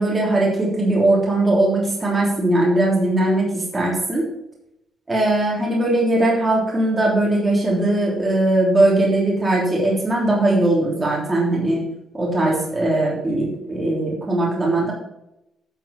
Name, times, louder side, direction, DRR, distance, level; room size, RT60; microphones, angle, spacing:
voice 1, 0.0-4.2 5.1-11.8 12.1-14.9, right 2 dB, 20° right, -4 dB, 3.2 m, -19 dB
10.5 x 5.9 x 5.3 m, 0.85 s
cardioid pair, 125°, 0 cm